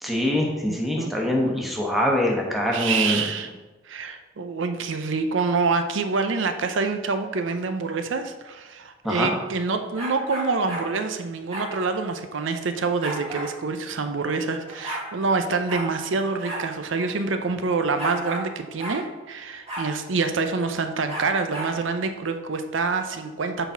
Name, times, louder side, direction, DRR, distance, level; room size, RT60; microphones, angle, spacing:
voice 1, 0.0-3.2 9.0-9.3, left 1 dB, ahead, -1 dB, 1.1 m, -24 dB
voice 2, 0.7-1.1 2.7-3.5 3.9-23.7, right 4 dB, 75° right, 8 dB, 0.6 m, -26 dB
sound 1, 9.9-10.9 11.5-11.7 13.0-13.5 14.4-14.5 14.7-15.1 15.7-15.9 16.4-16.7 17.0-17.1 18.0-18.5 18.8-19.0 19.7-19.9 21.1-21.7, right 1 dB, 35° right, 2.0 m, -32 dB
6.7 x 4.1 x 5.7 m, 1.2 s
head